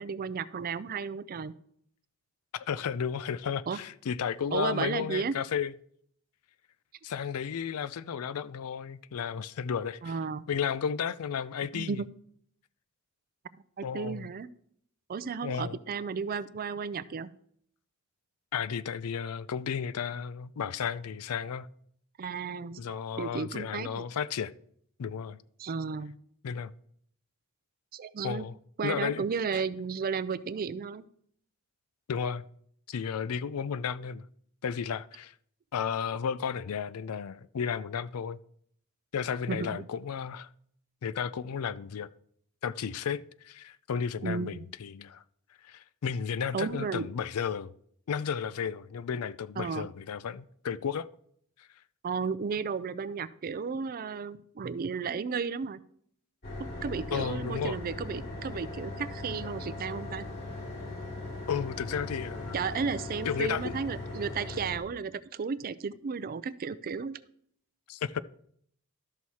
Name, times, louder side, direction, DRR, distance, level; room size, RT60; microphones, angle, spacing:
voice 1, 0.0-1.5 3.7-3.8 4.5-5.3 10.0-10.4 11.7-12.1 13.8-14.5 15.1-17.3 22.2-22.8 23.2-24.1 25.6-26.2 27.9-28.5 28.8-31.1 39.5-39.8 44.2-44.7 46.5-47.1 49.6-49.9 52.0-55.8 56.8-60.3 62.5-67.2, right 5 dB, 40° right, 0.4 m, -33 dB
voice 2, 2.5-5.7 7.0-10.1 10.5-12.0 13.8-14.3 15.4-15.8 18.5-21.7 22.8-24.5 25.0-25.4 26.4-26.7 28.2-28.5 28.8-29.2 29.5-29.6 32.1-32.4 32.9-34.2 34.6-35.3 35.7-38.4 39.1-40.5 41.0-42.1 42.6-45.2 45.6-47.7 48.1-51.1 57.1-57.8 61.5-62.7 63.2-63.8 67.9-68.2, left 7 dB, 75° left, 0.4 m, -33 dB
sound 1, 56.4-64.8, left 2 dB, 45° left, 2.7 m, -39 dB
12.5 x 6.3 x 4.2 m
head